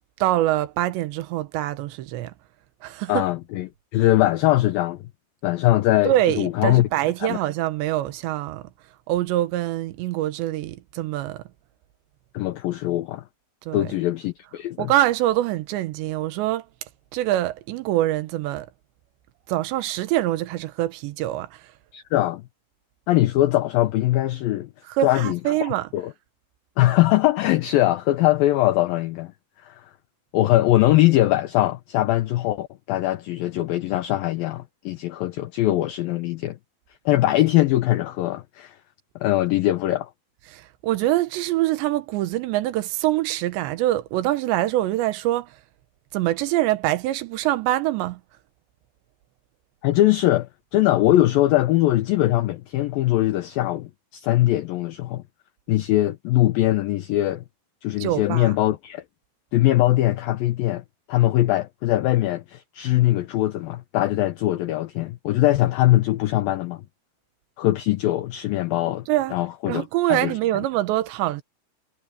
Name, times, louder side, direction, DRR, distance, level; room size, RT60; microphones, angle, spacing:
voice 1, 0.2-2.3 2.8-3.3 6.1-8.7 9.1-11.4 13.7-13.9 14.8-16.6 17.1-18.7 19.5-21.6 24.9-25.9 40.5-45.5 46.1-48.2 58.0-58.5 69.1-69.4 69.7-71.4, right 15 dB, 80° right, 3.3 m, -24 dB
voice 2, 3.1-5.0 5.4-6.9 7.2-7.4 12.3-13.2 13.7-14.9 21.9-22.4 23.1-24.7 25.0-26.1 26.8-29.3 29.6-29.9 30.3-36.6 37.1-38.8 39.2-40.1 49.8-55.2 55.7-57.4 57.8-59.0 59.5-66.8 67.6-69.1 69.3-70.3, left 15 dB, 80° left, 2.1 m, -21 dB
omnidirectional pair, 5.1 m